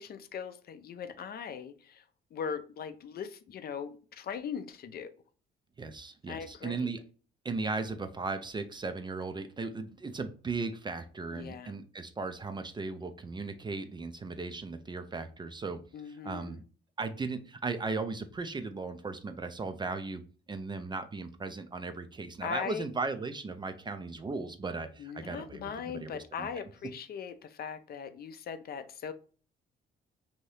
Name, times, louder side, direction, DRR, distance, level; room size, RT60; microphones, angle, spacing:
voice 1, 0.0-2.0 2.3-5.1 6.3-6.9 11.3-11.8 15.9-16.6 22.4-22.9 25.0-29.1, left 7 dB, 50° left, 0.4 m, -39 dB
voice 2, 5.8-7.0 7.4-15.8 16.2-16.6 17.0-20.2 20.5-26.1 26.4-26.5, right 3 dB, 25° right, 0.3 m, -37 dB
2.7 x 2.6 x 3.2 m
cardioid pair, 90°, 20 cm